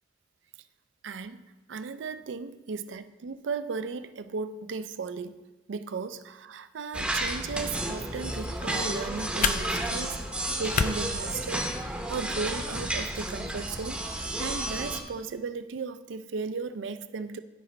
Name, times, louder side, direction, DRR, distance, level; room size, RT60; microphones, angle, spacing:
voice 1, 1.0-5.4 5.7-10.2 10.6-17.4, right 4 dB, 65° right, 0.4 m, -36 dB
sound 1, 6.9-15.0, right 1 dB, 5° right, 0.7 m, -32 dB
sound 2, 8.3-12.3, left 6 dB, 45° left, 0.3 m, -33 dB
12.0 x 5.0 x 3.2 m
head